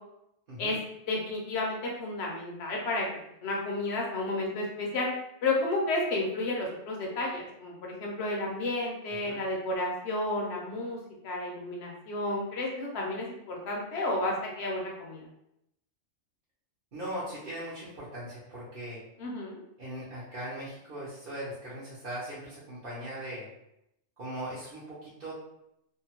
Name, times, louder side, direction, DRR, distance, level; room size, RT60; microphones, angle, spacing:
voice 1, 1.1-3.1 3.4-5.1 5.4-11.0 11.2-15.3 19.2-19.6, left 2 dB, 65° left, -1 dB, 1.0 m, -32 dB
voice 2, 16.9-19.0 19.8-23.5 24.2-25.3, right 1 dB, 50° right, -8 dB, 0.9 m, -39 dB
2.7 x 2.2 x 2.9 m, 0.81 s
omnidirectional pair, 1.2 m